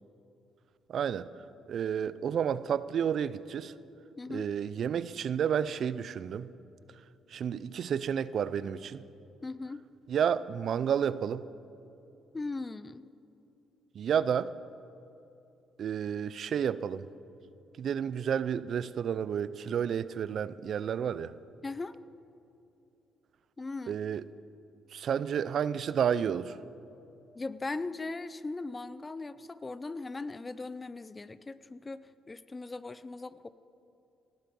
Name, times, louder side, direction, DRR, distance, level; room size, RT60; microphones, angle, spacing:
voice 1, 0.9-1.3 1.7-3.7 4.3-6.5 7.3-9.0 10.1-11.4 13.9-14.5 15.8-17.1 17.8-21.3 23.9-24.2 24.9-26.6, right 8 dB, 60° right, 17 dB, 0.5 m, -31 dB
voice 2, 4.2-4.5 9.4-9.8 12.3-13.1 21.6-22.0 23.6-24.0 27.3-33.5, left 3 dB, 25° left, 15 dB, 0.6 m, -39 dB
18.5 x 13.5 x 5.4 m, 2.7 s
cardioid pair, 75°, 0 cm